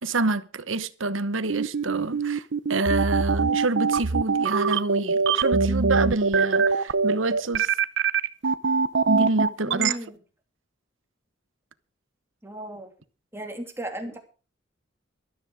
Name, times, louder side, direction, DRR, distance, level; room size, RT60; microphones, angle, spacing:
voice 1, 0.0-7.7 9.1-10.0, right 2 dB, 80° right, 1.1 m, -27 dB
sound 1, 1.5-9.9, right 5 dB, 65° right, 0.7 m, -23 dB
voice 2, 9.6-10.2 12.4-12.9 13.3-14.2, right 1 dB, 15° right, 2.8 m, -35 dB
13.0 x 12.5 x 5.0 m
head